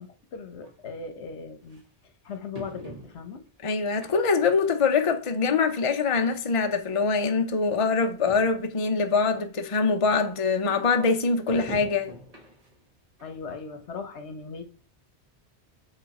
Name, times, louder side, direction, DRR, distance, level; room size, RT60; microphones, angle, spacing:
voice 1, 0.0-1.8 2.2-3.4 13.2-14.6, left 5 dB, 80° left, 1.2 m, -38 dB
sound 1, 0.6-0.7 1.7-1.8 2.5-3.5 4.0-4.5 4.9-5.0 6.0-6.1 6.3-6.4 7.2-7.3 7.6-7.7 8.0-8.1 8.3-8.7 9.3-9.4 11.5-12.8 13.2-13.3 13.8-13.9, right 1 dB, 35° right, 1.5 m, -43 dB
voice 2, 3.6-12.1, left 4 dB, 35° left, 0.7 m, -24 dB
8.2 x 3.4 x 4.2 m
omnidirectional pair, 1.1 m